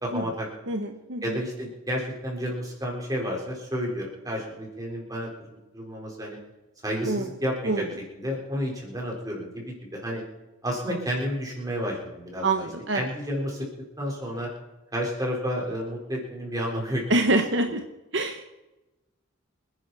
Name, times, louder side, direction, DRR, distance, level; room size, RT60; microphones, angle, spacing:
voice 1, 0.0-0.7 1.2-6.4 6.8-7.8 8.2-10.2 10.6-12.7 12.9-13.7 14.0-14.5 14.9-17.4 17.6-17.7, equal, 20° right, -1 dB, 4.3 m, -31 dB
voice 2, 0.7-1.4 7.0-7.3 7.6-7.8 12.4-13.1 17.1-17.8 18.1-18.4, right 2 dB, 60° right, 5 dB, 1.1 m, -25 dB
26.5 x 10.5 x 4.2 m, 1.0 s
head